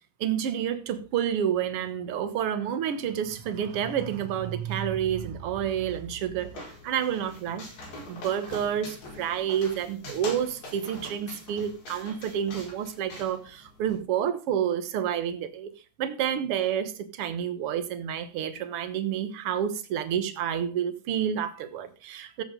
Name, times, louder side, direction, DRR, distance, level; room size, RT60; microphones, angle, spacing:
voice 1, 0.2-6.5 6.8-7.7 8.1-15.7 16.0-22.4, right 9 dB, 55° right, 1.8 m, -29 dB
sound 1, 5.8-14.0, left 2 dB, 75° left, 6.5 m, -44 dB
14.5 x 9.8 x 3.8 m
omnidirectional pair, 3.8 m